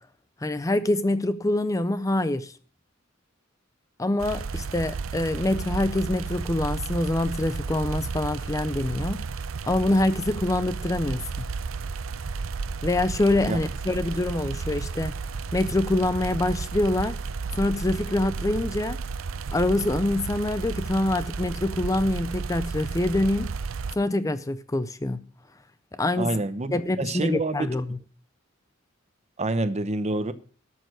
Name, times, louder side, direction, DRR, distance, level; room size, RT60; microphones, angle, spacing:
voice 1, 0.4-2.5 4.0-9.3 9.7-11.5 12.8-15.1 15.5-17.2 17.5-19.0 19.5-23.6 23.9-25.3 26.0-26.4 26.7-28.0, left 1 dB, 15° left, 0.5 m, -25 dB
sound 1, 4.2-24.0, right 4 dB, 80° right, 0.6 m, -33 dB
voice 2, 26.2-27.7 29.4-30.3, right 2 dB, 35° right, 0.8 m, -27 dB
12.5 x 6.7 x 6.2 m
head